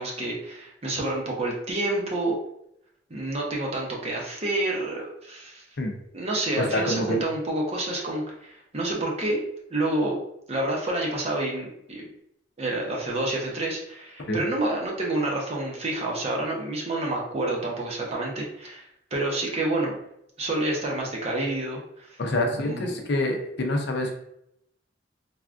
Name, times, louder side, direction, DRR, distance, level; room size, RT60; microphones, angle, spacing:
voice 1, 0.0-2.3 3.1-5.6 6.1-9.4 9.7-10.2 10.5-12.0 12.6-20.0 20.4-22.2 22.6-23.0, right 2 dB, 35° right, -1 dB, 0.7 m, -28 dB
voice 2, 6.6-7.2 14.3-14.4 22.2-24.1, left 1 dB, 65° left, 3 dB, 0.5 m, -26 dB
3.4 x 2.3 x 2.4 m, 0.76 s
head